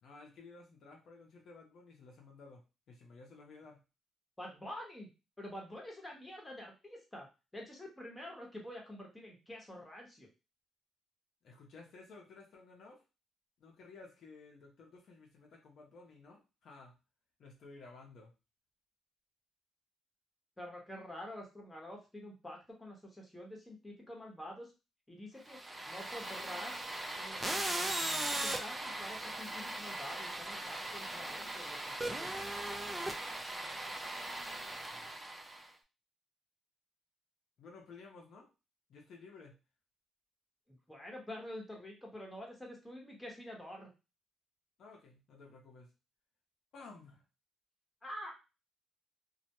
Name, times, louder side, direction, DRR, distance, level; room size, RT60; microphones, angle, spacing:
voice 1, 0.0-2.6 2.9-3.8 11.4-13.0 13.6-17.0 17.4-18.3 33.7-34.0 34.4-35.1 37.6-38.5 38.9-39.6 44.8-45.9 46.7-47.2, left 3 dB, 70° left, 0 dB, 0.6 m, -55 dB
voice 2, 4.4-5.1 5.4-7.3 7.5-10.3 20.6-24.7 25.1-25.6 25.9-26.8 27.1-27.9 28.3-32.8 40.7-43.9 48.0-48.3, left 1 dB, 10° left, -1 dB, 0.9 m, -47 dB
sound 1, 25.5-35.7, right 1 dB, 20° right, 0.4 m, -39 dB
2.2 x 2.0 x 2.9 m, 0.28 s
cardioid pair, 90°, 0 cm